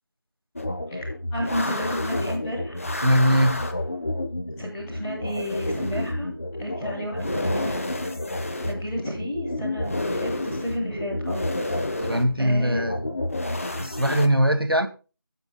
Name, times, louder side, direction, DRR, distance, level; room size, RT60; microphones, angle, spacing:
sound 1, 0.5-14.3, left 1 dB, 40° left, 1.2 m, -30 dB
voice 1, 0.9-2.8 4.5-6.3 6.6-7.8 8.6-11.4 12.4-13.0, equal, 5° left, 3.2 m, -32 dB
voice 2, 3.0-3.6 12.0-13.0 13.8-14.9, equal, 80° right, 2.0 m, -21 dB
25.0 x 8.3 x 2.3 m
figure-of-eight pair, 170°, 12 cm